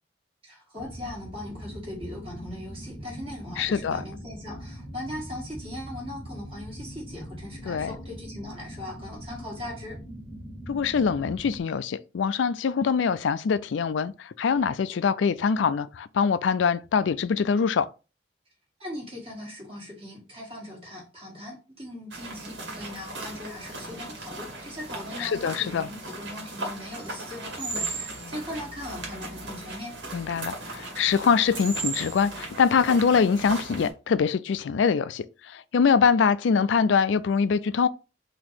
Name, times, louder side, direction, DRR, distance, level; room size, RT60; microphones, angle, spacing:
voice 1, 0.4-10.0 18.8-29.9, left 1 dB, 30° right, 1.7 m, -39 dB
sound 1, 0.8-11.6, equal, 5° left, 0.7 m, -41 dB
voice 2, 3.6-4.0 7.6-7.9 10.7-17.9 25.2-25.9 30.1-37.9, left 6 dB, 80° left, 0.4 m, -24 dB
sound 2, 22.1-33.9, right 3 dB, 80° right, 1.9 m, -37 dB
4.2 x 2.9 x 4.4 m
head